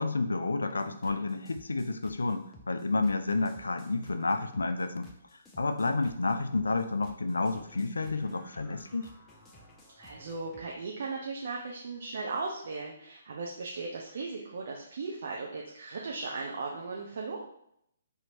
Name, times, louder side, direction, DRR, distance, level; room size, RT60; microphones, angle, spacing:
voice 1, 0.0-5.1 5.6-9.1, left 3 dB, 70° left, 9 dB, 0.3 m, -30 dB
sound 1, 0.6-10.7, left 1 dB, 15° left, 0.6 m, -54 dB
voice 2, 10.0-17.4, right 3 dB, 55° right, -1 dB, 0.5 m, -37 dB
4.4 x 2.8 x 2.5 m, 0.73 s
figure-of-eight pair, 130°, 0 cm